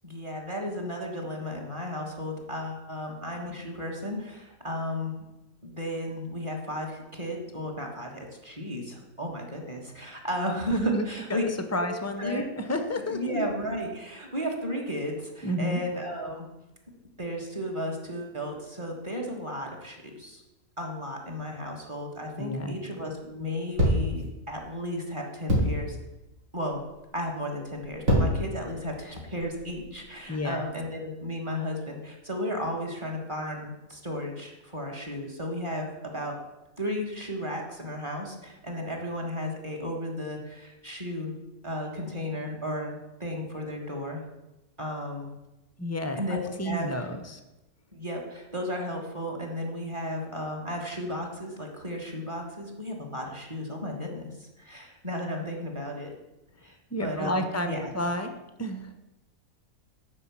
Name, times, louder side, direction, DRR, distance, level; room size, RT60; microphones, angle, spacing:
voice 1, 0.0-5.2 5.6-11.4 11.7-11.9 12.2-12.5 13.1-16.5 17.2-20.4 20.8-26.0 26.5-26.8 27.1-36.3 36.8-41.3 41.6-44.2 44.8-45.3 46.1-47.1 47.9-56.1 56.6-57.9, equal, 20° right, 1 dB, 1.5 m, -34 dB
voice 2, 10.7-11.4 11.7-13.5 15.4-15.8 22.4-22.8 30.3-30.6 45.8-47.4 56.9-58.3 58.6-58.9, left 1 dB, 20° left, 7 dB, 0.4 m, -31 dB
sound 1, 23.7-24.2 25.5-25.8 26.6-26.9 27.8-28.5 29.1-30.0, equal, 60° right, 2.7 m, -24 dB
9.9 x 4.5 x 7.3 m, 0.99 s
omnidirectional pair, 1.5 m